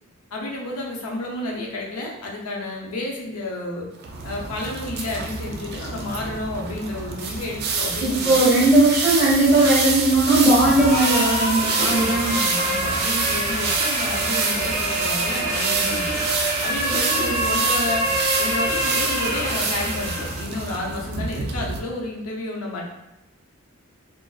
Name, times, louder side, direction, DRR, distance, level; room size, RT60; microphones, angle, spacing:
voice 1, 0.3-3.9 4.2-8.5 11.8-16.2 16.6-18.1 18.4-22.9, left 2 dB, 85° left, -1 dB, 0.5 m, -31 dB
sound 1, 4.0-21.8, right 4 dB, 50° right, 0.3 m, -27 dB
voice 2, 8.0-12.3, right 2 dB, 15° right, -9 dB, 1.1 m, -18 dB
sound 2, 10.6-20.4, equal, 5° left, 1.2 m, -26 dB
2.4 x 2.2 x 2.3 m, 0.93 s
head